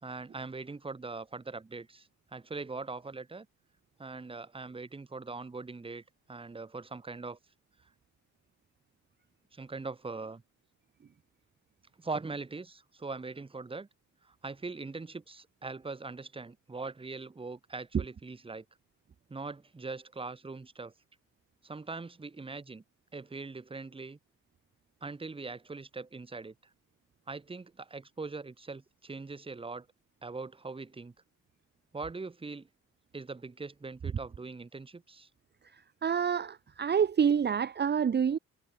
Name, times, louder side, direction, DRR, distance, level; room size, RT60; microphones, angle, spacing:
voice 1, 0.0-3.5 4.0-7.4 9.5-10.4 12.0-13.9 14.2-18.6 19.3-20.9 21.6-22.8 23.1-24.2 25.0-26.5 27.3-29.9 30.2-31.1 31.9-32.7 33.1-35.3, right 3 dB, 20° right, 1.3 m, -41 dB
voice 2, 36.0-38.4, right 7 dB, 35° right, 0.9 m, -27 dB
cardioid pair, 90°, 30 cm